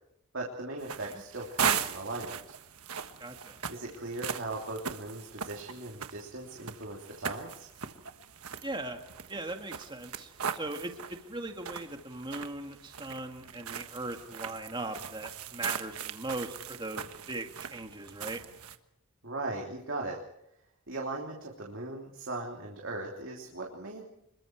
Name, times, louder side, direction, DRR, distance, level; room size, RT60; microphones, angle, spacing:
voice 1, 0.3-2.4 3.7-7.7 19.2-20.2 20.9-24.0, right 2 dB, 60° right, -1 dB, 3.1 m, -38 dB
sound 1, 0.8-18.8, right 7 dB, 85° right, 1.4 m, -39 dB
voice 2, 3.2-3.6 8.6-9.0 9.3-18.4, right 2 dB, 20° right, 4 dB, 1.9 m, -39 dB
26.5 x 22.0 x 4.6 m, 0.82 s
head